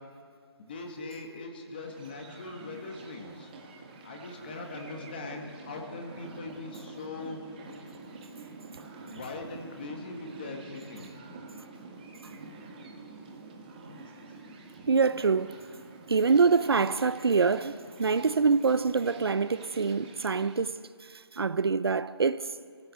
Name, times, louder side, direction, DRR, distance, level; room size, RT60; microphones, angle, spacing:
voice 1, 0.6-3.5 4.0-7.4 9.1-11.1, left 3 dB, 20° left, 1.8 m, -41 dB
sound 1, 1.7-20.6, right 3 dB, 20° right, 1.9 m, -48 dB
sound 2, 6.3-15.6, right 2 dB, ahead, 0.5 m, -52 dB
voice 2, 14.9-15.6 16.1-22.5, right 5 dB, 65° right, 0.7 m, -25 dB
25.0 x 16.0 x 7.9 m
hypercardioid pair, 175°, 14 cm